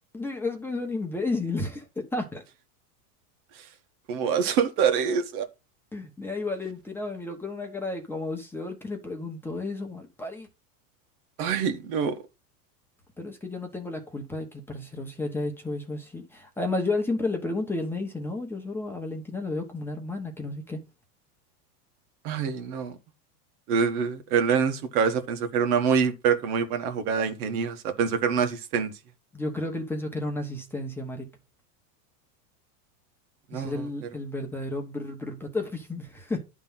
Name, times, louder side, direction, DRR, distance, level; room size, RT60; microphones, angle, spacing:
voice 1, 0.1-2.4 5.9-10.5 13.2-20.8 29.3-31.3 33.5-36.4, left 2 dB, 5° left, 1.2 m, -32 dB
voice 2, 4.1-5.5 11.4-12.1 22.2-22.9 23.7-28.9 33.5-33.8, right 6 dB, 70° right, 1.7 m, -25 dB
11.0 x 3.7 x 5.7 m
supercardioid pair, 150°, 47 cm